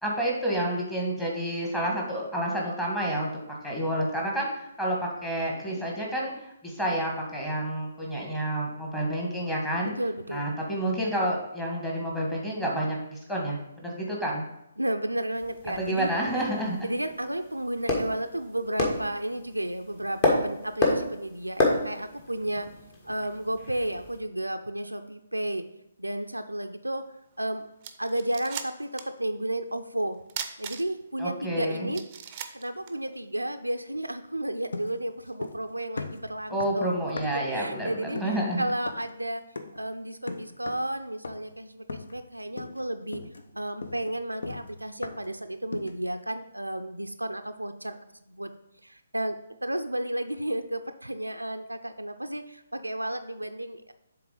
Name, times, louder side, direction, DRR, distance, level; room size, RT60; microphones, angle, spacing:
voice 1, 0.0-3.3 3.6-4.5 4.8-6.3 6.6-9.9 10.3-14.5 15.8-16.8 31.2-31.9 36.5-38.6, right 1 dB, 10° left, -3 dB, 1.5 m, -29 dB
voice 2, 10.0-10.5 14.8-16.5 16.8-22.7 23.0-25.7 26.0-27.1 27.4-27.7 28.0-30.2 30.6-32.0 32.5-39.4 39.7-43.2 43.5-48.0 48.3-48.5 48.8-53.9, right 1 dB, 85° right, 7 dB, 0.4 m, -32 dB
sound 1, 15.3-24.2, left 2 dB, 30° left, 1.3 m, -31 dB
sound 2, 27.4-27.5 27.8-29.2 29.5-29.6 30.3-31.2 31.6-31.7 31.9-33.5, right 8 dB, 30° right, 0.5 m, -38 dB
sound 3, 34.7-35.7 36.0-37.6 38.2-38.5 38.9-39.1 39.6-39.9 40.3-40.9 41.2-41.6 41.9-42.3 42.6-42.9 43.1-45.4 45.7-46.1, left 3 dB, 60° left, 0.6 m, -39 dB
6.9 x 3.9 x 4.9 m, 0.81 s
figure-of-eight pair, 135°, 0 cm